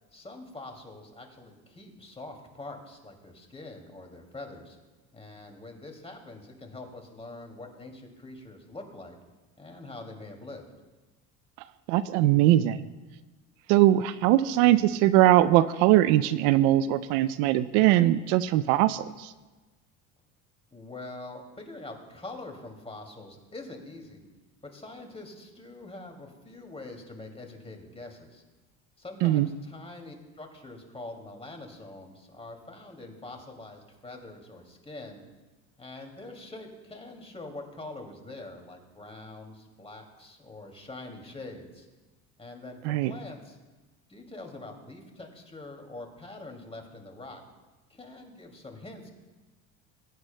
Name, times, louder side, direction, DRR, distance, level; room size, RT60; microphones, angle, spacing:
voice 1, 0.1-4.8 5.1-9.2 9.6-10.7 14.4-14.8 20.7-24.2 24.6-28.4 29.0-35.2 35.8-41.9 42.4-43.6 44.1-47.4 47.9-49.1, left 2 dB, 15° left, 3 dB, 2.4 m, -44 dB
voice 2, 11.9-12.8 13.7-19.3 29.2-29.5 42.8-43.1, right 14 dB, 70° right, 15 dB, 0.6 m, -21 dB
21.0 x 9.5 x 2.2 m, 1.2 s
hypercardioid pair, 85°, 42 cm